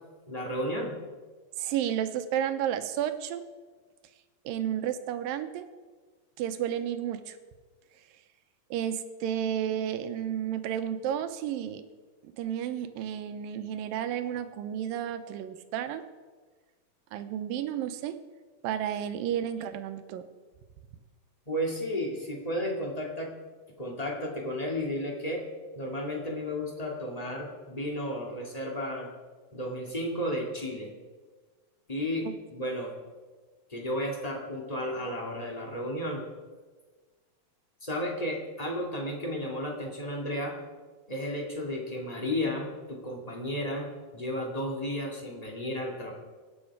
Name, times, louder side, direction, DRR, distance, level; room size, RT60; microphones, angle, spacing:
voice 1, 0.3-0.9 21.4-23.3 23.8-25.4 25.7-29.1 29.5-30.9 31.9-32.9 33.7-36.2 37.8-40.6 41.1-46.1, left 1 dB, 15° left, -1 dB, 1.7 m, -33 dB
voice 2, 1.6-3.4 4.5-5.7 6.4-7.4 8.7-11.8 12.2-16.0 17.1-18.2 18.6-20.2, right 10 dB, 90° right, 9 dB, 2.6 m, -32 dB
24.5 x 9.2 x 4.8 m, 1.4 s
omnidirectional pair, 4.0 m